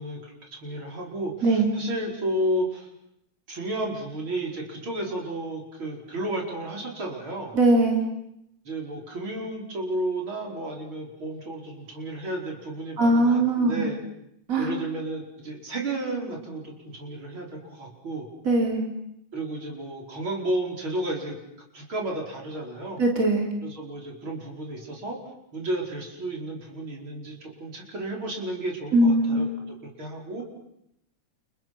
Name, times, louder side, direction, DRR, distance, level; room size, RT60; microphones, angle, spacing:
voice 1, 0.0-2.9 3.5-7.5 8.7-14.0 14.6-18.3 19.3-21.4 21.7-23.0 23.6-25.2 25.5-30.4, right 1 dB, 70° right, 0 dB, 5.7 m, -32 dB
voice 2, 7.5-8.0 13.0-13.9 14.5-14.7 18.5-18.9 23.0-23.5 28.9-29.5, right 2 dB, 40° right, 1 dB, 4.0 m, -20 dB
29.5 x 29.5 x 6.1 m, 0.79 s
omnidirectional pair, 2.3 m